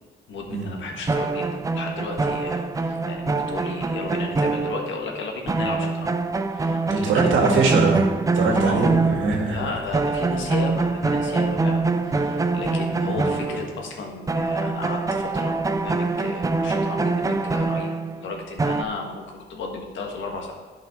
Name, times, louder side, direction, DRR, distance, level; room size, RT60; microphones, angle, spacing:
voice 1, 0.3-1.5 1.7-6.1 6.5-7.3 8.4-8.9 9.5-17.9 18.2-20.5, left 4 dB, 75° left, 1 dB, 1.6 m, -34 dB
sound 1, 1.1-5.2 5.5-9.6 9.9-14.0 14.3-18.8, right 3 dB, 15° right, 0.4 m, -24 dB
voice 2, 6.9-8.1 8.3-9.6 13.0-13.3, right 4 dB, 80° right, 0 dB, 1.9 m, -22 dB
11.0 x 5.6 x 3.7 m, 1.3 s
cardioid pair, 90°, 20 cm